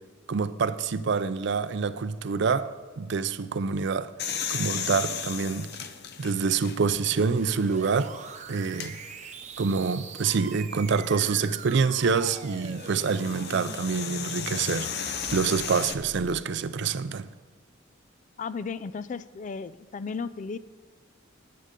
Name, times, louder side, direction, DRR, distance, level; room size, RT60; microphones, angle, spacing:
voice 1, 0.3-4.1 4.5-5.7 6.2-8.1 8.5-9.0 9.6-17.3, right 5 dB, 60° right, 0.4 m, -26 dB
sound 1, 4.2-7.1 7.7-7.8 8.6-8.9 11.1-15.9, left 7 dB, 55° left, 0.7 m, -35 dB
sound 2, 6.9-16.6, right 4 dB, 35° right, 0.8 m, -43 dB
voice 2, 18.4-20.6, left 5 dB, 40° left, 0.3 m, -34 dB
13.0 x 9.3 x 3.7 m
head